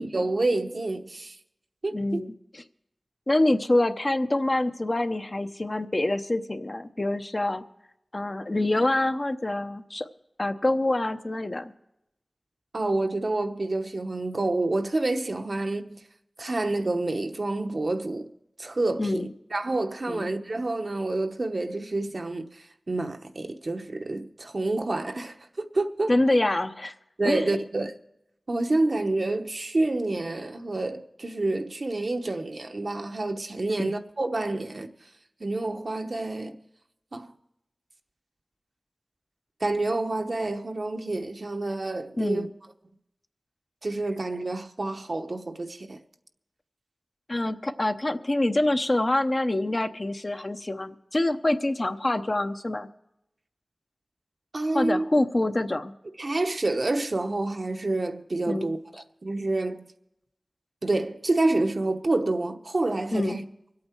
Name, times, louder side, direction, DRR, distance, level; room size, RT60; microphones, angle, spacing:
voice 1, 0.0-1.4 1.8-2.2 12.7-16.0 16.4-18.3 18.6-26.1 27.2-27.9 28.5-34.9 35.4-36.6 37.1-37.3 39.6-42.5 43.8-46.0 54.5-55.1 56.2-58.8 59.2-59.9 60.8-63.4, right 2 dB, 60° right, 0.9 m, -28 dB
voice 2, 1.9-2.3 3.3-7.6 8.1-10.1 10.4-11.7 19.0-19.3 20.1-20.3 26.1-26.9 27.2-27.5 33.8-33.9 42.2-42.5 47.3-52.9 54.7-55.9 58.5-58.7 63.1-63.4, left 1 dB, 40° left, 0.8 m, -26 dB
25.0 x 8.6 x 4.5 m
wide cardioid pair, 70°, 0 cm